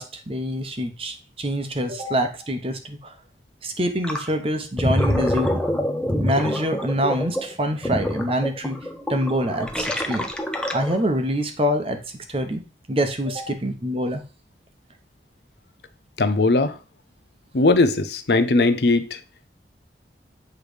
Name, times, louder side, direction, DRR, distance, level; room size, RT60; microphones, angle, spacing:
voice 1, 0.0-3.1 3.6-5.6 6.2-8.8 9.1-10.3 10.7-12.0 12.3-12.6 12.9-14.2, equal, 30° right, 0.9 m, -25 dB
Gurgling, 4.0-4.3 4.6-11.1, left 1 dB, 5° left, 0.6 m, -26 dB
voice 2, 16.2-16.8 17.5-19.2, left 3 dB, 70° left, 0.7 m, -19 dB
8.2 x 3.3 x 5.0 m
head